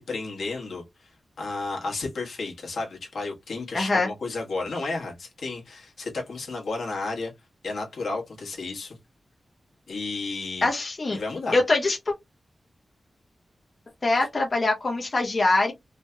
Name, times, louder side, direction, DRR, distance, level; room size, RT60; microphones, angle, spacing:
voice 1, 0.0-7.3 7.6-9.0 9.9-10.7 11.1-11.6, left 3 dB, 85° left, 1.3 m, -32 dB
voice 2, 3.7-4.1 10.6-11.2 11.5-12.1 14.0-15.7, left 2 dB, 40° left, 0.7 m, -23 dB
3.0 x 2.8 x 2.2 m
wide cardioid pair, 135°, 0 cm